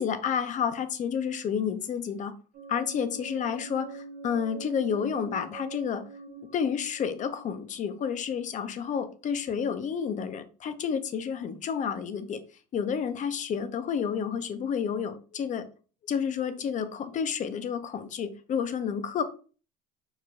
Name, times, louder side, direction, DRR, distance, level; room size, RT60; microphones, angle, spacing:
voice 1, 0.0-2.3 2.7-6.1 6.5-12.4 12.7-15.7 16.1-19.2, left 7 dB, 35° left, 11 dB, 0.5 m, -30 dB
sound 1, 2.5-8.3, right 3 dB, 65° right, 0.9 m, -43 dB
4.7 x 2.2 x 2.5 m, 0.37 s
supercardioid pair, 95°, 21 cm